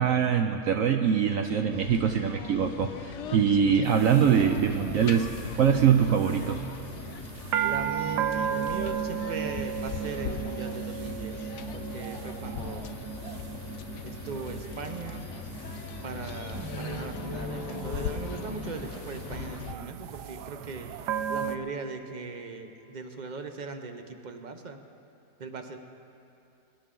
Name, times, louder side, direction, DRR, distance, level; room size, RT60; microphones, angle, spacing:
voice 1, 0.0-5.3 5.6-6.6, right 7 dB, 65° right, 5 dB, 0.9 m, -23 dB
sound 1, 1.7-19.7, left 9 dB, 70° left, 0.7 m, -40 dB
sound 2, 3.8-21.6, right 9 dB, 85° right, 1.2 m, -36 dB
voice 2, 7.6-12.9 14.0-15.2 16.0-20.9 21.3-24.8 25.4-25.8, right 4 dB, 40° right, 6 dB, 0.6 m, -39 dB
sound 3, 16.5-20.3, equal, 15° right, 1.0 m, -40 dB
24.0 x 10.5 x 3.8 m, 2.6 s
omnidirectional pair, 1.7 m